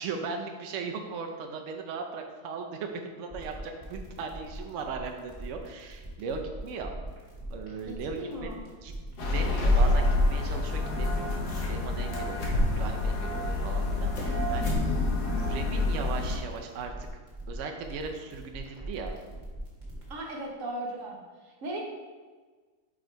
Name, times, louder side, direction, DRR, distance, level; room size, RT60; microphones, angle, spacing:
voice 1, 0.0-6.9 7.5-8.5 8.8-14.7 15.3-16.9 17.5-19.1, right 5 dB, 80° right, 3 dB, 0.6 m, -38 dB
sound 1, 3.3-20.1, right 1 dB, 20° right, 1.5 m, -42 dB
voice 2, 7.9-8.6 20.1-21.2 21.4-21.8, right 1 dB, 50° right, 0 dB, 1.3 m, -37 dB
sound 2, 9.0-9.1 10.7-10.8 11.0-11.8 12.1-12.9 13.4-14.3 14.6-14.9 15.2-15.3 15.8-15.9, left 1 dB, 90° left, 1.8 m, -32 dB
sound 3, 9.2-16.4, left 2 dB, 65° left, 1.5 m, -27 dB
4.9 x 4.8 x 4.5 m, 1.4 s
omnidirectional pair, 1.9 m